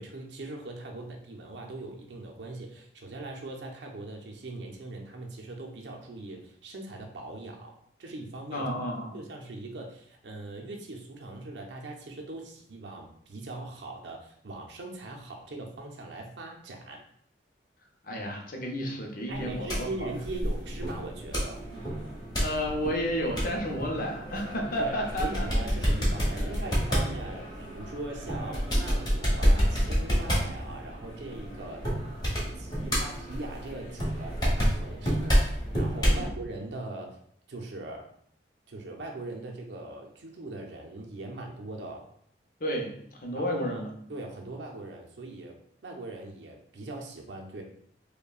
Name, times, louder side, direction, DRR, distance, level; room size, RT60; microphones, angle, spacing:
voice 1, 0.0-7.7 8.0-8.7 9.1-17.0 19.3-21.7 24.8-31.9 32.4-37.2 37.5-38.1 38.7-42.1 43.3-43.8 44.1-45.6 45.8-47.6, right 2 dB, 75° right, 1 dB, 0.5 m, -40 dB
voice 2, 8.5-9.2 18.0-20.1 22.4-25.5 26.4-26.5 36.1-36.3 42.6-43.9, equal, 50° left, 1 dB, 0.6 m, -32 dB
sound 1, 19.3-36.3, equal, 25° left, 1.1 m, -29 dB
5.2 x 2.2 x 2.3 m, 0.66 s
head